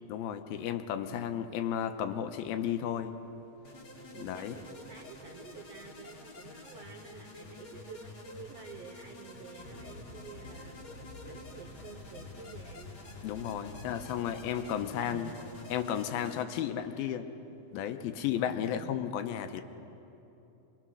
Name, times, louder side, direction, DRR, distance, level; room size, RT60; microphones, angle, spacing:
voice 1, 0.1-3.1 4.1-4.6 13.2-15.3 15.7-17.3 17.7-19.6, left 9 dB, 85° left, 8 dB, 2.7 m, -33 dB
sound 1, 3.6-16.4, left 2 dB, 35° left, 2.2 m, -49 dB
voice 2, 4.1-10.8 11.2-12.9 14.9-15.6 16.9-17.2 18.5-19.0, right 6 dB, 85° right, 4 dB, 1.4 m, -50 dB
sound 2, 9.6-15.0, left 2 dB, 55° left, 2.3 m, -50 dB
25.5 x 22.5 x 6.3 m, 3.0 s
omnidirectional pair, 4.2 m